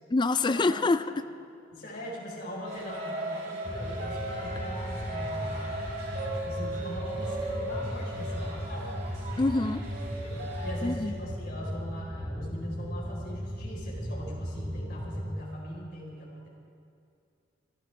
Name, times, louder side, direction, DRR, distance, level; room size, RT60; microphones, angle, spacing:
voice 1, 0.1-1.3 9.4-9.8 10.8-11.2, left 3 dB, 25° left, 12 dB, 0.4 m, -26 dB
voice 2, 1.7-5.8 6.2-9.0 10.1-16.5, left 1 dB, 55° left, -4 dB, 4.1 m, -41 dB
sound 1, 2.6-10.7, right 1 dB, 85° right, 4.7 m, -38 dB
sound 2, 2.9-4.6 5.3-9.8, right 3 dB, 50° right, 2.5 m, -45 dB
sound 3, 3.6-15.4, equal, 10° right, 0.8 m, -36 dB
26.0 x 12.0 x 3.4 m, 2.4 s
head